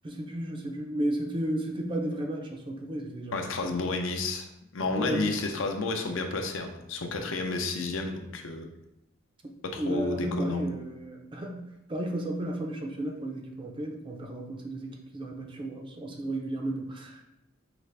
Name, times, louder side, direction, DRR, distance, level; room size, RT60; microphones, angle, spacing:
voice 1, 0.0-3.7 4.9-5.4 9.8-17.2, right 1 dB, 25° right, 2 dB, 0.4 m, -33 dB
voice 2, 3.3-4.5 4.7-8.7 9.7-10.7, left 3 dB, 65° left, 4 dB, 0.5 m, -31 dB
5.0 x 2.5 x 3.2 m, 0.85 s
head